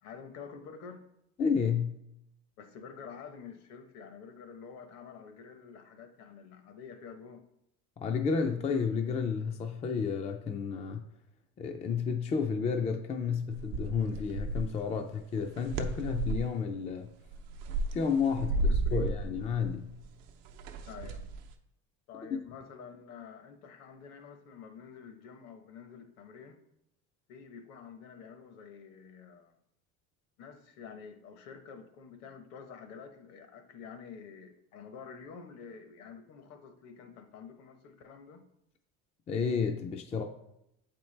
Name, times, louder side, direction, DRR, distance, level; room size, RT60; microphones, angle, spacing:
voice 1, 0.0-1.0 2.6-7.5 18.4-19.1 20.9-21.2 22.1-26.6 27.3-29.6 30.4-38.5, left 6 dB, 60° left, 7 dB, 1.0 m, -48 dB
voice 2, 1.4-2.0 8.0-11.0 11.6-17.1 17.9-18.6 18.9-19.9 39.3-40.2, left 6 dB, 20° left, 5 dB, 0.4 m, -31 dB
sound 1, 13.5-14.8 15.4-16.5 17.2-21.5, right 2 dB, 85° right, 0.7 m, -33 dB
7.7 x 4.4 x 3.2 m, 0.80 s
cardioid pair, 145°, 30 cm